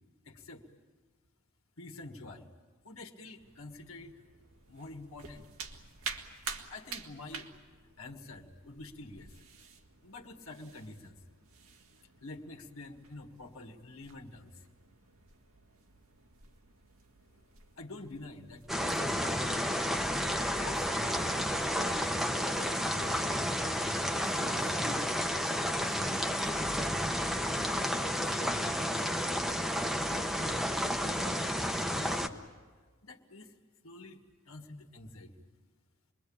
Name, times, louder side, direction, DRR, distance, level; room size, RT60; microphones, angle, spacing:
voice 1, 0.2-0.7 1.8-2.5 2.8-4.2 4.7-5.5 6.7-7.5 8.0-9.4 10.0-11.2 12.2-14.7 17.8-19.7 20.4-21.4 21.8-22.0 22.5-23.4 23.9-25.2 25.8-26.8 27.5-28.8 29.3-29.6 29.9-30.6 30.9-32.4 33.0-33.5 33.8-34.2 34.5-35.3, left 2 dB, 80° left, 2 dB, 1.9 m, -48 dB
sound 1, 3.3-22.2, right 5 dB, 85° right, 1.9 m, -50 dB
sound 2, 18.7-32.3, equal, ahead, 0.9 m, -31 dB
27.0 x 22.0 x 8.8 m, 1.4 s
head